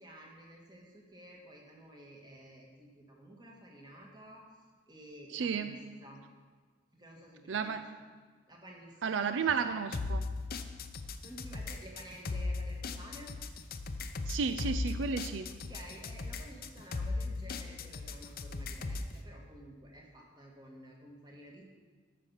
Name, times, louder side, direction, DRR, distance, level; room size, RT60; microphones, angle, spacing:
voice 1, 0.0-4.4 4.9-6.2 6.9-7.8 8.5-9.8 11.2-13.3 15.7-21.6, right 1 dB, 20° right, -1 dB, 1.6 m, -52 dB
voice 2, 5.3-5.7 7.5-7.8 9.0-10.2 14.3-15.5, right 5 dB, 75° right, 10 dB, 0.4 m, -32 dB
sound 1, 9.9-19.1, left 3 dB, 50° left, 0.6 m, -38 dB
12.5 x 6.0 x 5.6 m, 1.5 s
head